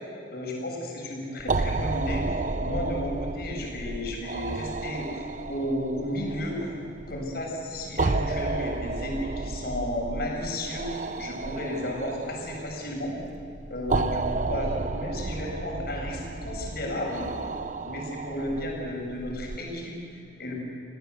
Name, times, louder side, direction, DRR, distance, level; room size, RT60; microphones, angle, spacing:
voice 1, 0.3-2.3 2.6-6.7 7.1-13.2 13.7-17.3 17.8-20.5, left 1 dB, 55° left, -1 dB, 7.2 m, -33 dB
sound 1, 1.4-19.6, right 3 dB, 45° right, 0.7 m, -32 dB
29.5 x 18.0 x 8.2 m, 2.5 s
head